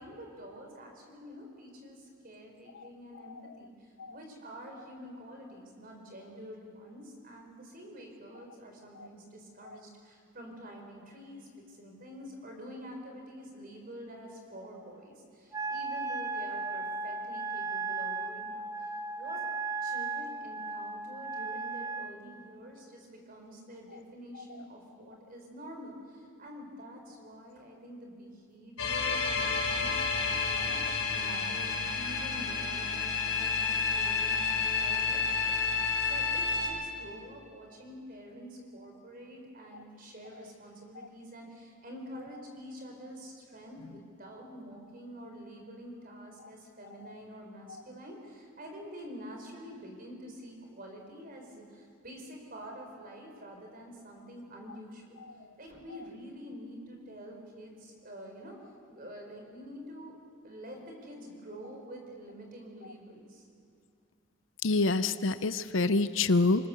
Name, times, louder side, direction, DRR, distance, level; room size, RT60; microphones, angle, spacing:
voice 1, 0.0-19.4 19.8-55.2 55.6-58.5 58.9-60.2 60.4-63.5, equal, 45° right, 2 dB, 4.3 m, -47 dB
Wind instrument woodwind instrument, 15.5-22.1, right 3 dB, 15° right, 1.0 m, -36 dB
sound 1, 28.8-36.7, left 5 dB, 85° left, 4.7 m, -30 dB
voice 2, 64.6-66.7, left 3 dB, 65° left, 13 dB, 0.7 m, -26 dB
25.0 x 20.5 x 6.9 m, 2.4 s
head